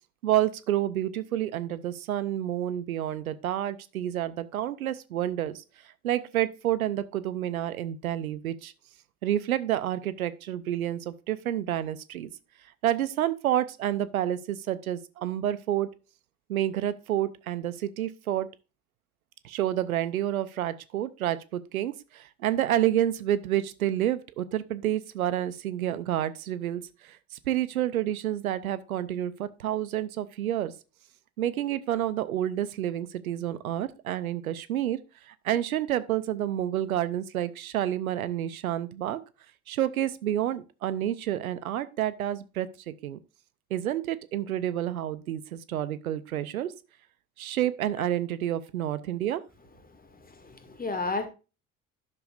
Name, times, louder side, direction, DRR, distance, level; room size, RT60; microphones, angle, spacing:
voice 1, 0.2-5.6 6.0-8.7 9.2-12.3 12.8-15.9 16.5-18.5 19.4-27.2 27.5-30.7 31.4-35.0 35.3-39.2 39.7-43.2 43.7-46.7 47.4-49.4, right 12 dB, 85° right, 0.6 m, -29 dB
voice 2, 49.9-51.3, left 3 dB, 20° left, 2.0 m, -34 dB
10.5 x 6.9 x 2.4 m
figure-of-eight pair, 60°, 42 cm